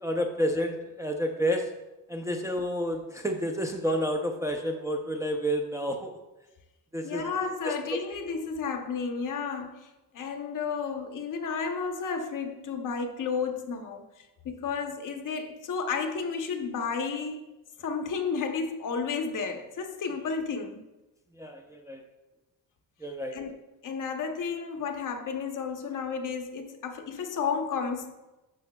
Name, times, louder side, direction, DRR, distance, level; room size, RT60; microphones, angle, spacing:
voice 1, 0.0-1.7 2.1-6.1 6.9-7.2 7.6-7.7 21.4-22.0 23.0-23.3, equal, 10° right, 0.5 m, -30 dB
voice 2, 7.0-17.4 17.8-20.8 23.3-23.5 23.8-28.1, left 5 dB, 55° left, 0.9 m, -32 dB
11.5 x 6.6 x 2.3 m
cardioid pair, 150°, 38 cm